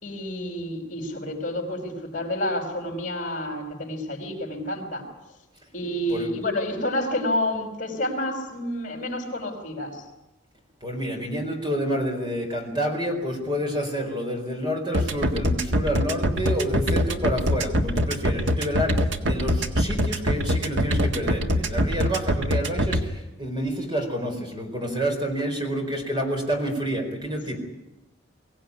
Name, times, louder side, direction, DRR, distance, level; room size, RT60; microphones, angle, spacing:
voice 1, 0.0-5.0 5.7-10.0, left 1 dB, 45° left, 4 dB, 5.2 m, -29 dB
voice 2, 10.8-27.6, equal, 25° right, 3 dB, 4.4 m, -28 dB
sound 1, 14.9-23.0, equal, 75° right, 1.7 m, -22 dB
23.0 x 17.0 x 9.7 m, 0.99 s
head